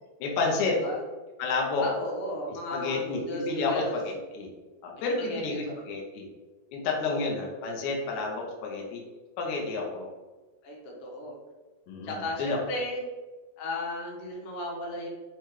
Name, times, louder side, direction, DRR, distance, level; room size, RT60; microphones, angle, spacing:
voice 1, 0.2-0.8 1.4-1.8 2.7-4.5 4.8-6.2 6.7-9.0 9.4-10.1 11.9-12.6, left 3 dB, 90° left, -1 dB, 1.6 m, -30 dB
voice 2, 1.8-4.0 5.3-5.8 6.8-7.2 10.6-11.4 12.0-13.0 13.6-15.1, left 1 dB, 70° left, -1 dB, 2.2 m, -35 dB
6.4 x 2.2 x 3.0 m, 1.2 s
omnidirectional pair, 4.4 m